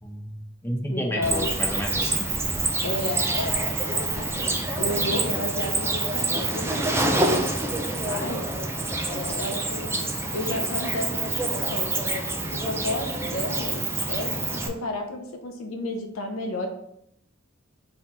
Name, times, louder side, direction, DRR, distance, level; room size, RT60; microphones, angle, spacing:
voice 1, 0.0-2.3, equal, 10° left, 0 dB, 0.7 m, -31 dB
voice 2, 0.9-1.5 2.8-8.4 9.1-12.0 12.6-16.7, left 1 dB, 75° left, 4 dB, 0.7 m, -32 dB
Cricket, 1.2-14.7, right 2 dB, 10° right, 0.4 m, -27 dB
4.0 x 2.9 x 4.2 m, 0.74 s
head